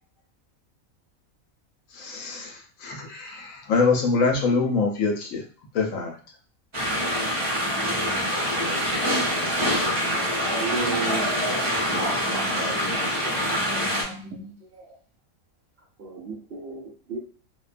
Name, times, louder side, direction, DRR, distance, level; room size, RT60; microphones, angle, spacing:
voice 1, 1.9-5.4 5.7-6.1, left 4 dB, 75° left, 1.0 m, -24 dB
sound 1, 6.7-14.0, equal, 25° right, 0.8 m, -25 dB
voice 2, 7.6-8.4 11.0-11.1 11.9-14.6, left 1 dB, 85° right, 1.1 m, -41 dB
voice 3, 10.0-11.3 11.9-14.2 14.7-14.8 16.0-17.2, right 3 dB, 60° right, 0.7 m, -34 dB
2.7 x 2.2 x 2.4 m
omnidirectional pair, 1.4 m